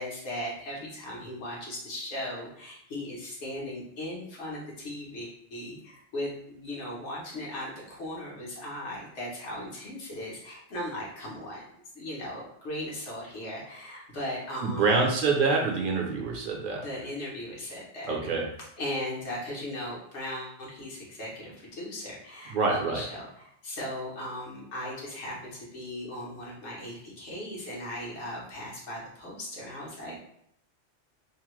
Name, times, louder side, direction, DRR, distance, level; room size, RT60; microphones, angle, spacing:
voice 1, 0.0-11.7 11.9-15.1 16.8-18.2 18.8-30.2, left 1 dB, 75° left, -5 dB, 1.3 m, -37 dB
voice 2, 14.6-16.8 18.1-18.4 22.5-23.0, right 4 dB, 55° right, 0 dB, 0.7 m, -26 dB
2.8 x 2.1 x 3.0 m, 0.72 s
omnidirectional pair, 1.2 m